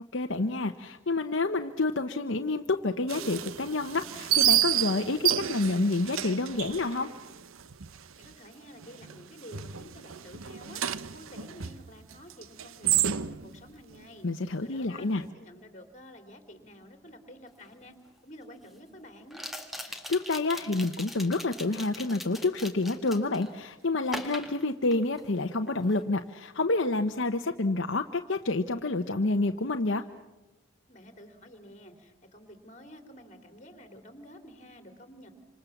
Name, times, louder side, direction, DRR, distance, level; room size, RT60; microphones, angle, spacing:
voice 1, 0.1-7.1 14.2-15.2 19.9-30.0, left 2 dB, 60° left, 6 dB, 0.9 m, -28 dB
sound 1, 3.1-8.0 8.2-8.3 8.8-9.2 9.5-13.6, right 11 dB, 80° right, 0.8 m, -29 dB
voice 2, 8.0-10.8 11.1-14.3 14.6-18.0 18.2-19.4 30.9-35.3, equal, 35° left, 7 dB, 3.2 m, -50 dB
sound 2, 17.6-17.7 19.3-23.5 24.1-25.4 25.7-26.0, left 1 dB, ahead, 1.8 m, -41 dB
27.5 x 26.5 x 7.2 m, 1.1 s
head